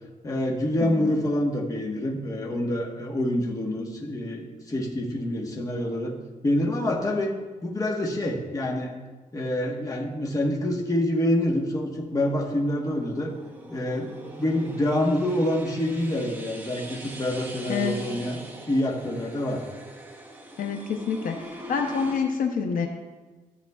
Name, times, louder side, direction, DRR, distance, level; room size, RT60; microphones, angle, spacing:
voice 1, 0.2-6.1 6.4-7.3 7.6-8.9 9.3-13.3 13.7-18.4 18.7-19.6, left 1 dB, 25° left, -1 dB, 1.2 m, -26 dB
sound 1, 12.1-22.2, right 1 dB, 15° right, 0.9 m, -42 dB
voice 2, 20.6-21.3 21.7-22.9, left 6 dB, 70° left, 3 dB, 0.7 m, -27 dB
13.5 x 7.0 x 2.3 m, 1.3 s
wide cardioid pair, 155°, 15 cm